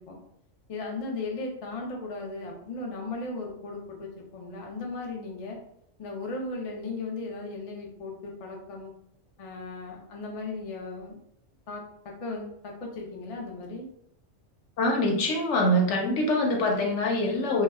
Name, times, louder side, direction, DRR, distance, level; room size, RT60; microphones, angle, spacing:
voice 1, 0.7-5.6 6.0-8.9 9.4-11.2 11.7-11.8 12.2-13.8, left 3 dB, 55° left, 0 dB, 0.3 m, -36 dB
voice 2, 14.8-17.6, left 1 dB, 75° left, 0 dB, 0.9 m, -24 dB
2.2 x 2.1 x 3.3 m, 0.73 s
omnidirectional pair, 1.3 m